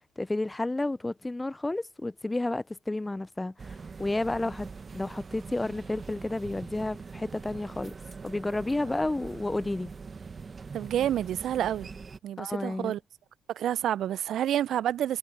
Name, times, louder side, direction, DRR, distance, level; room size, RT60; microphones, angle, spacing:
voice 1, 0.2-4.7 4.9-7.9 8.2-9.9 12.4-13.0, left 2 dB, 15° left, 0.5 m, -31 dB
sound 1, 3.6-12.2, right 5 dB, 35° right, 1.2 m, -43 dB
voice 2, 10.7-11.9 12.2-13.0 13.5-15.2, right 11 dB, 60° right, 0.4 m, -28 dB
supercardioid pair, 70°, 0 cm